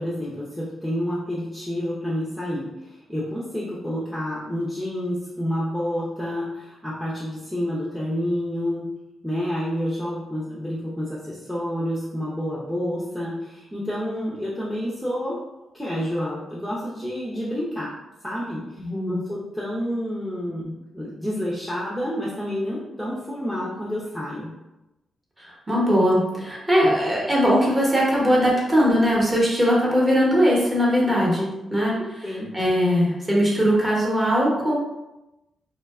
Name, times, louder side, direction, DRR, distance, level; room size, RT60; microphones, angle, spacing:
voice 1, 0.0-8.9 9.2-15.4 15.7-17.9 18.2-24.5 32.2-32.5, equal, ahead, -7 dB, 0.5 m, -29 dB
voice 2, 18.8-19.2 25.4-32.0 32.5-34.7, equal, 15° right, -4 dB, 0.8 m, -20 dB
2.6 x 2.1 x 2.3 m, 0.98 s
cardioid pair, 100°, 0 cm